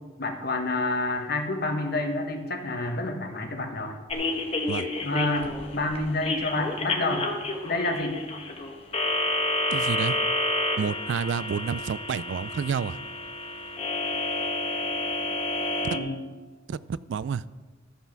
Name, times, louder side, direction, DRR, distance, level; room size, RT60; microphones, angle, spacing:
voice 1, 0.2-4.0 5.0-7.3 7.6-8.2 15.9-16.2, left 2 dB, 50° left, 4 dB, 1.2 m, -28 dB
sound 1, 4.1-16.0, left 2 dB, 30° left, 1.0 m, -29 dB
voice 2, 9.7-10.2 10.8-13.0 16.7-17.4, right 6 dB, 65° right, 18 dB, 0.3 m, -29 dB
13.0 x 5.7 x 5.9 m, 1.3 s
head